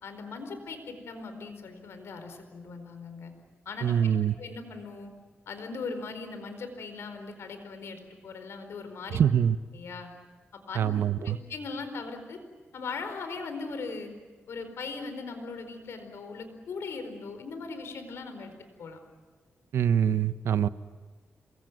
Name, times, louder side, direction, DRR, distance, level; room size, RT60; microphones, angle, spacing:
voice 1, 0.0-3.3 3.6-3.9 4.2-5.1 5.5-9.2 9.7-10.1 10.5-10.9 11.2-12.4 12.7-14.1 14.5-18.5 18.8-19.0, left 4 dB, 80° left, 8 dB, 4.5 m, -39 dB
voice 2, 3.8-4.3 9.1-9.6 10.7-11.4 19.7-20.7, right 9 dB, 85° right, 13 dB, 1.0 m, -24 dB
27.0 x 22.5 x 9.4 m, 1.4 s
cardioid pair, 95°, 4 cm